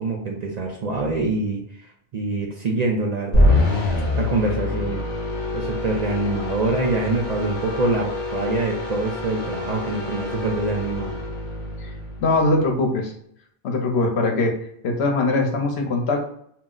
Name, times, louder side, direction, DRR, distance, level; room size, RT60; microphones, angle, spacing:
voice 1, 0.0-3.6 4.2-5.0 5.5-11.2, right 3 dB, 50° right, -1 dB, 0.5 m, -25 dB
sound 1, 3.3-12.7, left 2 dB, 40° left, 1.0 m, -25 dB
voice 2, 12.2-13.1 13.6-14.5 14.8-16.2, left 2 dB, 75° left, 2 dB, 1.0 m, -21 dB
2.7 x 2.1 x 3.7 m, 0.68 s
omnidirectional pair, 1.1 m